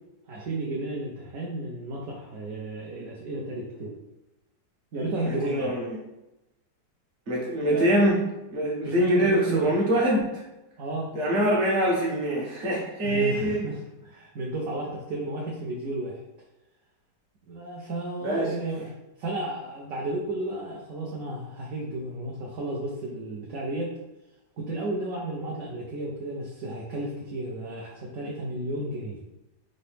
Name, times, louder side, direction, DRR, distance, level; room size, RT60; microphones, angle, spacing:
voice 1, 0.3-3.9 4.9-5.7 7.7-7.8 8.8-9.7 10.8-11.1 13.0-16.2 17.5-18.9 19.2-23.9 24.6-29.2, right 2 dB, 65° right, -3 dB, 1.0 m, -33 dB
voice 2, 5.2-6.0 7.3-8.2 8.5-10.4 11.1-13.7 18.2-18.5, right 1 dB, 45° right, -4 dB, 1.2 m, -24 dB
4.0 x 2.8 x 3.3 m, 0.95 s
omnidirectional pair, 1.8 m